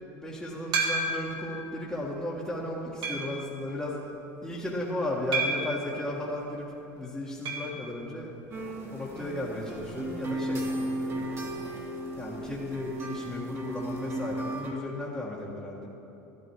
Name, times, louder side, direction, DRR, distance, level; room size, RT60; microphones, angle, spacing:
voice 1, 0.1-4.1 4.4-8.3 8.6-11.5 12.2-15.9, left 1 dB, 5° left, -7 dB, 1.7 m, -35 dB
sound 1, 0.7-1.4 2.0-2.1 3.0-3.4 5.3-5.8 7.5-7.8 8.0-8.1 8.4-8.5 10.5-10.6, right 3 dB, 55° right, 2.0 m, -29 dB
sound 2, 8.5-14.7, right 1 dB, 30° right, 2.1 m, -35 dB
12.5 x 11.5 x 4.7 m, 2.9 s
supercardioid pair, 105°, 8 cm